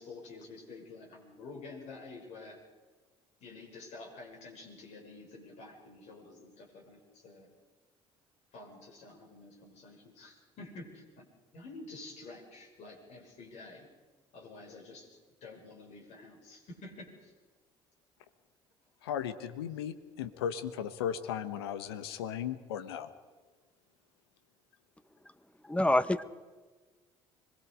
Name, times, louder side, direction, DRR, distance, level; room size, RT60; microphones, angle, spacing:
voice 1, 0.0-2.6 3.4-7.5 8.5-11.2 11.5-13.9 14.3-15.1 15.4-17.3 20.3-20.4, left 3 dB, 60° left, 0 dB, 7.0 m, -49 dB
voice 2, 19.0-23.1, left 9 dB, 85° left, 12 dB, 1.3 m, -36 dB
voice 3, 25.7-26.2, left 1 dB, 10° left, 14 dB, 1.2 m, -26 dB
26.0 x 21.5 x 5.1 m, 1.3 s
hypercardioid pair, 60°, 13 cm